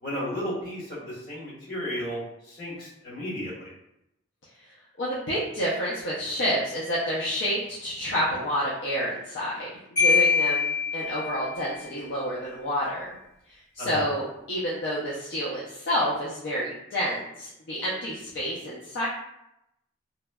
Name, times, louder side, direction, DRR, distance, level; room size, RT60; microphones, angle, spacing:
voice 1, 0.0-2.2 2.5-3.7 13.8-14.0, equal, 45° left, -8 dB, 1.3 m, -33 dB
voice 2, 5.0-9.7 10.0-13.1 13.5-19.1, equal, 65° left, -7 dB, 0.5 m, -29 dB
Marimba xylophone, 10.0-11.7, left 5 dB, 85° left, 1.3 m, -24 dB
2.9 x 2.2 x 2.3 m, 0.83 s
head